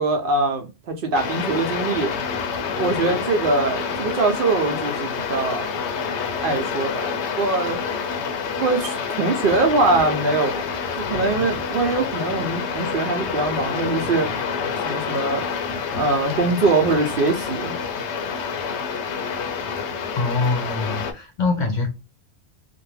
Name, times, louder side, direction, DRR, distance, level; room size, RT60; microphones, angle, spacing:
voice 1, 0.0-2.1 2.8-5.8 6.4-7.1 7.4-7.8 8.6-10.7 11.1-14.3 14.9-15.5 15.9-17.7, right 3 dB, 60° right, 0.7 m, -22 dB
sound 1, 1.1-21.1, left 6 dB, 85° left, 0.9 m, -28 dB
voice 2, 20.2-21.9, left 3 dB, 50° left, 0.7 m, -24 dB
2.5 x 2.1 x 3.1 m
omnidirectional pair, 1.1 m